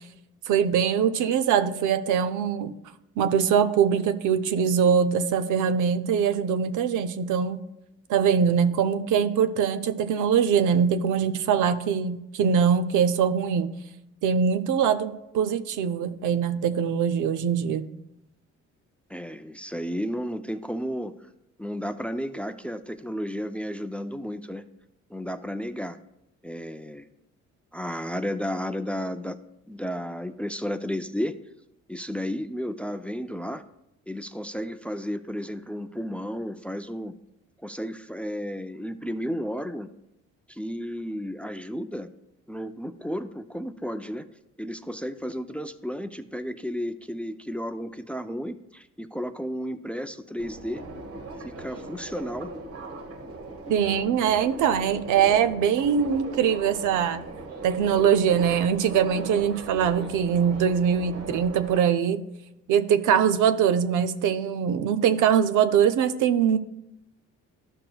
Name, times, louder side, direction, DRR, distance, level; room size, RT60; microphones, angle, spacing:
voice 1, 0.5-2.7 3.2-7.6 8.1-13.7 14.2-17.9 53.7-57.2 57.6-62.2 62.7-66.6, right 7 dB, 80° right, 11 dB, 0.6 m, -22 dB
voice 2, 19.1-21.1 21.6-24.6 25.1-26.0 26.4-27.1 27.7-29.4 29.7-31.3 31.9-33.6 34.1-37.1 37.6-39.9 40.5-42.1 42.5-44.2 44.6-50.8 51.4-52.5, equal, 5° left, 10 dB, 0.3 m, -33 dB
Subway metro underground, 50.4-61.8, right 3 dB, 50° right, 1.1 m, -39 dB
12.5 x 5.9 x 2.2 m, 0.87 s
cardioid pair, 90°, 30 cm